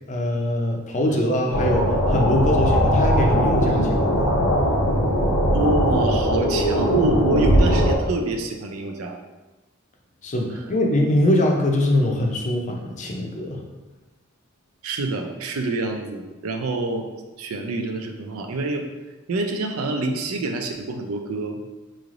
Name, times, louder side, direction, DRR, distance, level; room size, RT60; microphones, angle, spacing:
voice 1, 0.1-4.3 10.2-13.6, left 1 dB, 35° left, 1 dB, 0.5 m, -22 dB
sound 1, 1.5-8.0, equal, 75° left, 0.7 m, -20 dB
voice 2, 5.5-9.2 14.8-17.1 17.4-18.9 19.3-21.6, right 2 dB, 90° right, 4 dB, 0.5 m, -26 dB
3.8 x 3.1 x 2.5 m, 1.2 s
head